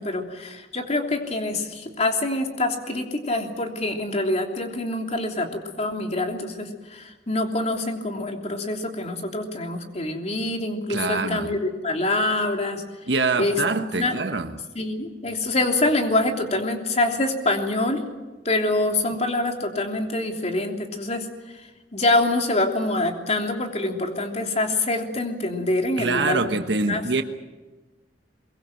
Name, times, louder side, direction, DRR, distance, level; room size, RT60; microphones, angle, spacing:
voice 1, 0.0-12.8 13.4-14.2 14.7-18.0 18.4-21.3 21.5-26.5 26.9-27.0, left 2 dB, 40° left, 3.2 m, -25 dB
voice 2, 10.9-11.5 13.1-14.6 26.0-27.2, right 3 dB, 80° right, 1.3 m, -25 dB
23.0 x 23.0 x 7.8 m
head